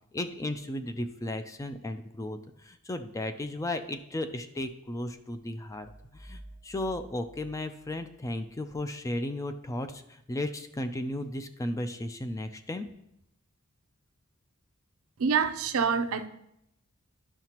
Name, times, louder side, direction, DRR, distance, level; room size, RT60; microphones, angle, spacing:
voice 1, 0.1-2.4 2.6-5.9 6.1-12.9, left 1 dB, 15° left, 8 dB, 0.4 m, -35 dB
sound 1, 5.7-8.5, right 1 dB, 20° right, 0.7 m, -51 dB
voice 2, 15.2-16.3, right 6 dB, 75° right, 9 dB, 0.5 m, -26 dB
11.0 x 5.7 x 2.9 m, 0.80 s
head